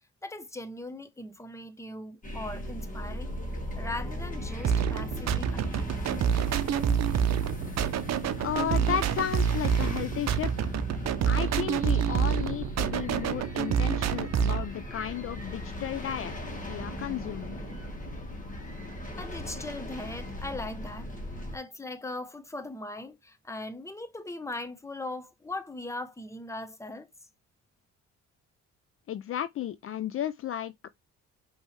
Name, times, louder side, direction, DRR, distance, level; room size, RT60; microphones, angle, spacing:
voice 1, 0.2-6.3 19.2-21.1 21.5-27.1, left 2 dB, 10° left, 0.8 m, -39 dB
sound 1, 2.2-21.6, equal, 25° left, 1.7 m, -38 dB
sound 2, 4.6-14.7, right 8 dB, 60° right, 0.7 m, -27 dB
voice 2, 8.4-10.7 11.2-17.6 29.1-30.7, left 10 dB, 45° left, 0.4 m, -34 dB
5.3 x 3.0 x 3.2 m
cardioid pair, 90°, 30 cm